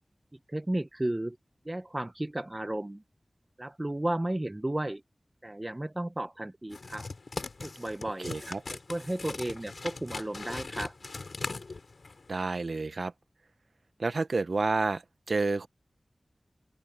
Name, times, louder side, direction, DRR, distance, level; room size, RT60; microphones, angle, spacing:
voice 1, 0.5-1.4 1.6-3.0 3.6-5.0 5.4-7.1 7.6-8.3 8.7-10.9, right 1 dB, 30° right, 0.8 m, -33 dB
sound 1, 6.7-12.3, left 3 dB, 80° left, 3.7 m, -40 dB
voice 2, 8.2-8.6 12.3-13.1 14.0-15.0 15.3-15.7, right 3 dB, 80° right, 0.7 m, -29 dB
open air
wide cardioid pair, 50°, 0 cm